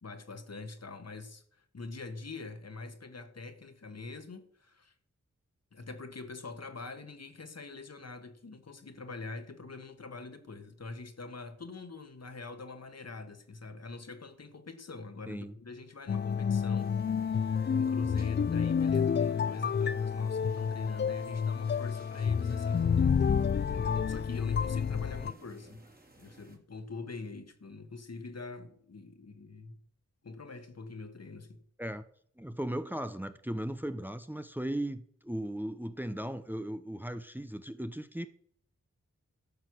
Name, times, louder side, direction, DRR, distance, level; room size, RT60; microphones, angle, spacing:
voice 1, 0.0-4.9 5.7-17.4 17.7-23.1 23.5-25.9 26.2-29.8 30.2-31.6, left 3 dB, 60° left, 1.6 m, -44 dB
sound 1, 16.1-25.3, left 6 dB, 40° left, 0.4 m, -29 dB
sound 2, 16.8-26.6, right 2 dB, 30° right, 2.6 m, -59 dB
voice 2, 32.4-38.3, right 1 dB, 5° right, 0.8 m, -37 dB
12.0 x 6.6 x 6.3 m
cardioid pair, 45°, 29 cm